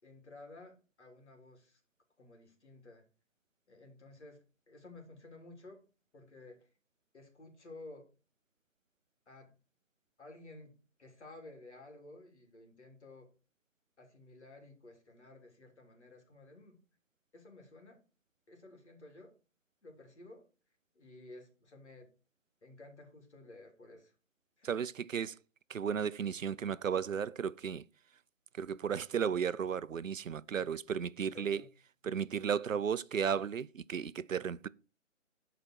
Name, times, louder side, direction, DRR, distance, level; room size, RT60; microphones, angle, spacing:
voice 1, 0.0-1.8 2.2-3.0 3.7-4.4 4.7-5.8 6.1-6.7 7.1-8.1 9.3-9.5 10.2-10.7 11.0-13.3 14.0-16.8 17.3-18.0 18.5-19.3 19.8-20.4 20.9-22.1 22.6-24.1 24.6-24.7 31.3-31.7, left 2 dB, 60° left, 3.3 m, -54 dB
voice 2, 24.6-25.4 25.7-27.8 28.6-31.6 32.0-34.7, right 7 dB, 80° right, 0.6 m, -34 dB
12.5 x 5.1 x 4.5 m
figure-of-eight pair, 160°, 39 cm